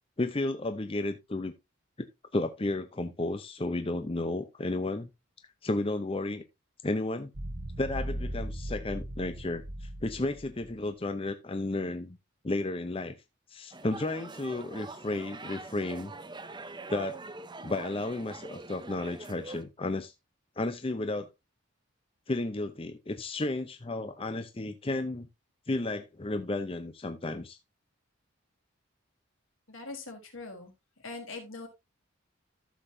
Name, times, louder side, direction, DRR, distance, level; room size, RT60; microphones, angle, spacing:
voice 1, 0.2-1.5 2.0-2.1 2.3-5.1 5.6-6.4 6.8-7.3 7.8-12.2 12.4-13.2 13.5-16.1 16.9-17.2 17.6-20.1 20.6-21.3 22.3-25.3 25.7-27.6, left 2 dB, 25° left, 0.6 m, -33 dB
sound 1, 7.3-10.8, right 1 dB, 65° right, 1.4 m, -38 dB
sound 2, 13.7-19.6, right 3 dB, 20° right, 0.8 m, -44 dB
voice 2, 29.7-30.7 31.0-31.7, left 3 dB, 80° left, 3.3 m, -42 dB
13.5 x 6.9 x 2.7 m
head